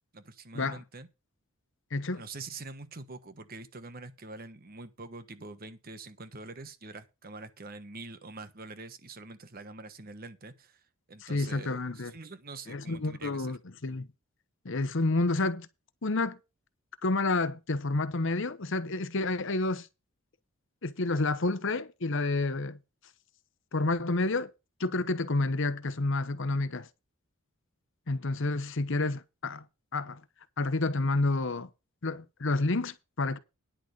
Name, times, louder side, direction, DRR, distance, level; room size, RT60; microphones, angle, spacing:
voice 1, 0.1-1.1 2.1-13.5, right 3 dB, 40° right, 1.2 m, -45 dB
voice 2, 1.9-2.2 11.2-12.1 12.7-14.1 14.6-15.7 16.0-16.4 17.0-19.9 20.8-22.8 23.7-24.5 24.8-26.9 28.1-29.6 29.9-30.2 30.6-31.7 32.0-33.4, left 2 dB, 60° left, 1.0 m, -29 dB
10.5 x 6.3 x 6.6 m
head